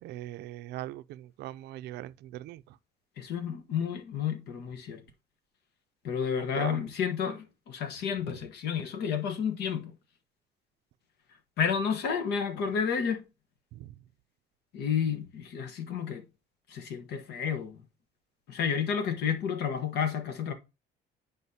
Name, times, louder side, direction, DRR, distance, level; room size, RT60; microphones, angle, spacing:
voice 1, 0.0-2.6 6.4-6.9 13.7-13.9, right 15 dB, 75° right, 0.4 m, -40 dB
voice 2, 3.2-5.0 6.0-10.0 11.6-13.2 14.7-16.2 16.7-17.8 18.5-20.5, left 7 dB, 75° left, 1.2 m, -31 dB
9.5 x 5.2 x 2.8 m
cardioid pair, 110°, 17 cm